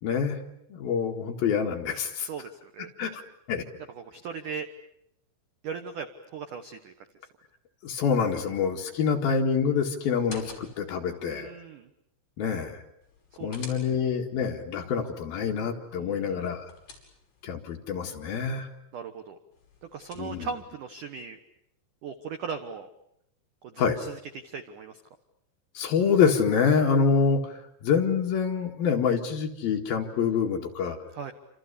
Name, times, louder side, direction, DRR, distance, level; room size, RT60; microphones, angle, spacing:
voice 1, 0.0-0.4 0.7-2.3 3.0-3.2 3.5-3.6 7.8-11.5 12.4-12.8 13.4-16.7 17.4-18.7 20.2-20.5 23.8-24.0 25.7-31.0, left 6 dB, 60° left, 2 dB, 3.2 m, -26 dB
voice 2, 2.2-2.9 3.9-4.7 5.6-6.9 8.3-8.5 11.3-11.9 13.3-13.7 15.9-16.4 18.9-19.4 19.8-21.4 22.0-22.9 23.6-25.0 31.1-31.3, right 6 dB, 75° right, 8 dB, 1.9 m, -38 dB
sound 1, 10.1-11.0 13.0-14.3 16.3-17.5 19.5-20.6, left 3 dB, 40° left, 6.9 m, -48 dB
29.0 x 27.0 x 6.9 m, 0.77 s
omnidirectional pair, 5.7 m